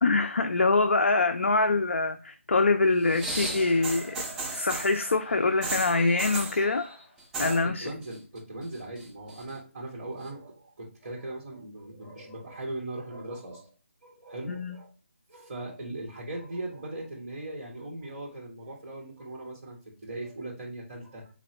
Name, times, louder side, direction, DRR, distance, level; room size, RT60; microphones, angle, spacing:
voice 1, 0.0-4.3 4.5-6.9 7.4-7.9 14.5-14.8, left 3 dB, 65° left, 7 dB, 0.4 m, -24 dB
sound 1, 3.0-5.0 5.6-6.6 7.2-7.6 7.9-8.4 8.7-9.5 10.3-10.4, right 2 dB, 5° right, 0.4 m, -35 dB
sound 2, 3.5-7.2, equal, 25° left, 1.6 m, -47 dB
voice 2, 7.4-13.7 14.0-14.9 15.3-21.3, right 2 dB, 30° right, -3 dB, 1.4 m, -39 dB
4.1 x 3.0 x 2.8 m, 0.34 s
figure-of-eight pair, 160°, 7 cm